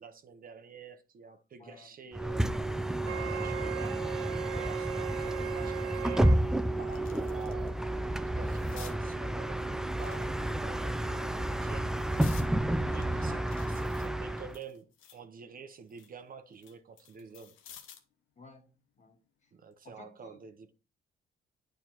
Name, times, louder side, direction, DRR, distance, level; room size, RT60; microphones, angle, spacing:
voice 1, 0.0-2.4 3.2-6.3 6.8-11.9 12.9-17.6 19.5-20.7, right 6 dB, 45° right, 0.8 m, -48 dB
voice 2, 1.6-1.9 3.0-3.5 12.8-13.4 18.4-19.5 19.8-20.4, left 4 dB, 35° left, 1.5 m, -53 dB
Bus, 2.1-14.6, right 1 dB, 5° right, 0.4 m, -31 dB
Wind instrument woodwind instrument, 3.0-6.4, right 15 dB, 90° right, 0.4 m, -40 dB
sound 1, 6.3-7.7 8.0-9.0 9.9-10.8 11.4-12.5 13.0-15.3 15.7-18.1 19.5-19.7, left 8 dB, 80° left, 0.9 m, -54 dB
9.0 x 4.6 x 2.9 m
cardioid pair, 90°, 20 cm